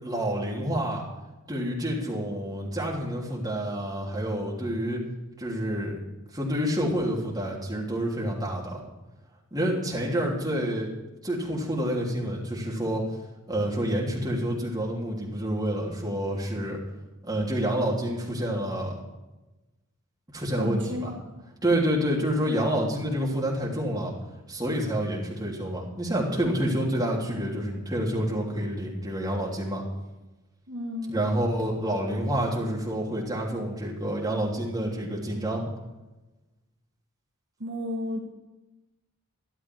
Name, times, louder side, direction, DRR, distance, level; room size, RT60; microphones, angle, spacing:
voice 1, 0.0-1.0 1.5-5.0 5.4-5.9 6.3-8.8 9.5-10.9 11.2-13.0 13.5-16.8 17.2-19.0 20.3-21.1 21.6-24.1 24.5-29.8 31.1-35.6, right 1 dB, 15° right, -4 dB, 3.3 m, -28 dB
voice 2, 20.6-21.5 30.7-31.2 37.6-38.2, left 1 dB, 55° right, 0 dB, 1.7 m, -33 dB
13.0 x 12.0 x 4.8 m, 1.1 s
head